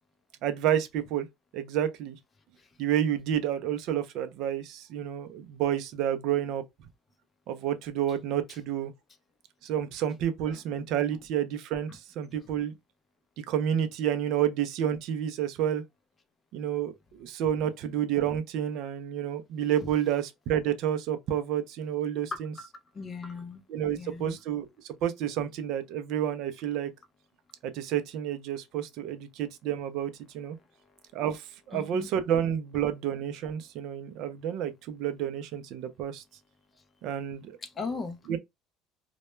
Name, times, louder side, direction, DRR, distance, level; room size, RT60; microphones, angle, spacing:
voice 1, 0.4-1.3 1.5-2.2 2.8-6.6 7.5-8.9 9.6-12.7 13.4-15.8 16.5-22.5 23.7-26.9 27.6-30.6 31.1-36.2 37.0-37.6 38.3-38.4, right 10 dB, 60° right, 0.4 m, -30 dB
voice 2, 22.9-23.6 24.0-24.4 31.7-32.1 37.6-38.4, left 4 dB, 20° left, 0.4 m, -38 dB
2.2 x 2.1 x 3.0 m
cardioid pair, 155°, 0 cm